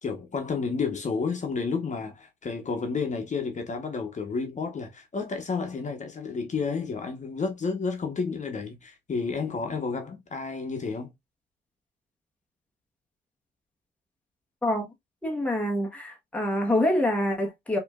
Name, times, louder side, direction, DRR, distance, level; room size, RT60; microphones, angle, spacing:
voice 1, 0.0-11.1, left 4 dB, 40° left, 1.1 m, -31 dB
voice 2, 15.2-17.8, left 1 dB, 5° left, 1.1 m, -26 dB
5.0 x 3.1 x 2.4 m
cardioid pair, 115°, 19 cm